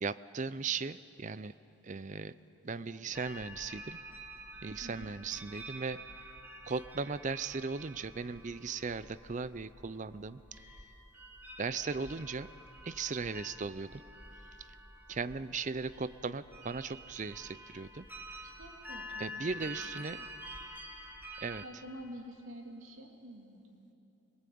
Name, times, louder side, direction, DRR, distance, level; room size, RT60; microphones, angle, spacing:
voice 1, 0.0-1.5 1.8-2.3 2.6-4.0 4.6-6.0 6.6-10.4 11.6-12.5 12.8-14.0 15.1-18.1 19.2-20.3 21.4-21.6, right 4 dB, 35° right, 15 dB, 0.5 m, -37 dB
sound 1, 3.1-21.7, equal, 10° right, 1.2 m, -48 dB
voice 2, 4.8-5.1 18.4-20.0 21.6-23.9, equal, 75° right, 2 dB, 2.8 m, -49 dB
22.0 x 21.5 x 8.6 m, 2.9 s
head